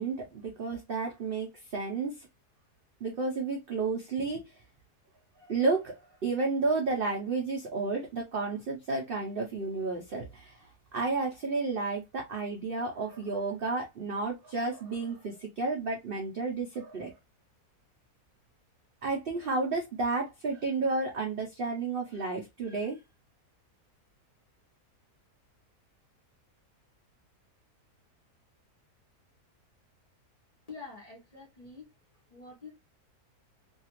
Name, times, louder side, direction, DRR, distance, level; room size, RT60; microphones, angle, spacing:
voice 1, 0.0-2.3 3.0-4.5 5.5-17.1 19.0-23.0, right 3 dB, 60° right, 0.6 m, -32 dB
voice 2, 30.7-31.9 32.3-32.7, left 4 dB, 30° left, 0.8 m, -46 dB
2.8 x 2.4 x 2.8 m
omnidirectional pair, 1.7 m